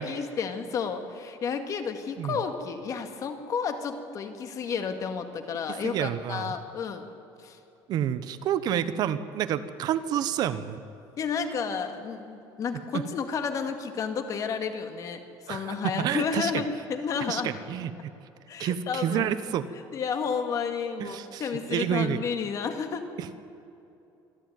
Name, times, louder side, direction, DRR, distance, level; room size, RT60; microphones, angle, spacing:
voice 1, 0.0-7.1 7.4-7.6 11.2-17.5 18.5-19.3 19.9-23.1, left 6 dB, 45° left, 7 dB, 2.0 m, -31 dB
voice 2, 5.8-6.5 7.9-10.8 12.9-13.0 15.5-16.6 17.3-18.1 18.6-19.7 21.0-21.4 21.7-22.2 23.2-23.3, right 10 dB, 60° right, 13 dB, 1.0 m, -29 dB
26.0 x 13.0 x 9.4 m, 2.7 s
cardioid pair, 130°, 8 cm